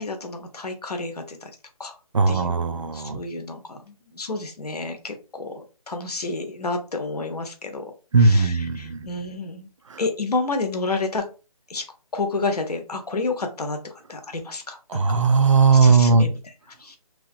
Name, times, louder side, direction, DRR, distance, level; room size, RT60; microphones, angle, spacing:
voice 1, 0.0-1.4 1.8-1.9 2.3-2.5 2.8-7.8 8.2-9.7 10.0-11.2 11.7-11.8 12.1-13.8 14.1-15.0 15.8-16.3 16.8-17.0, left 3 dB, 85° left, 0.9 m, -30 dB
voice 2, 2.1-3.2 8.1-9.1 9.9-10.0 14.9-16.3, right 4 dB, 55° right, 0.4 m, -18 dB
2.8 x 2.4 x 2.6 m
figure-of-eight pair, 165°, 19 cm